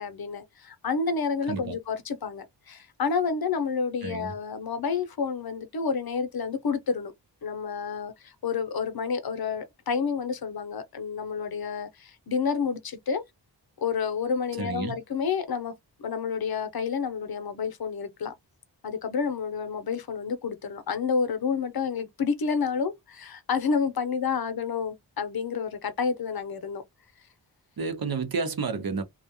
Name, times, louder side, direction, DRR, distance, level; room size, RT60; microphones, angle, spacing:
voice 1, 0.0-7.1 7.4-13.2 13.8-15.7 16.0-18.3 18.8-26.8, left 5 dB, 55° left, 0.7 m, -29 dB
voice 2, 4.0-4.3 14.6-15.0 27.8-29.0, right 4 dB, 55° right, 0.8 m, -30 dB
2.4 x 2.1 x 2.8 m
cardioid pair, 45°, 44 cm